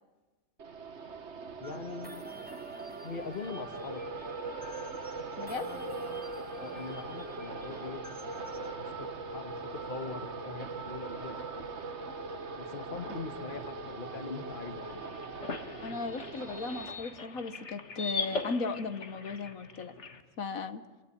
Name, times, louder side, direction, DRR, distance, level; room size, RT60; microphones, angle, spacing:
sound 1, 0.6-16.9, right 3 dB, 55° right, 1.8 m, -41 dB
voice 1, 1.6-2.3 3.0-4.0 6.6-8.1 8.7-11.6 12.6-15.0, left 4 dB, 40° left, 10 dB, 1.7 m, -42 dB
sound 2, 1.6-8.7, right 1 dB, 5° right, 1.6 m, -48 dB
sound 3, 14.7-20.2, left 4 dB, 55° left, 2.1 m, -40 dB
voice 2, 15.8-19.9 20.4-20.8, left 4 dB, 75° left, 11 dB, 1.7 m, -36 dB
25.5 x 23.5 x 10.0 m, 1.3 s
omnidirectional pair, 1.5 m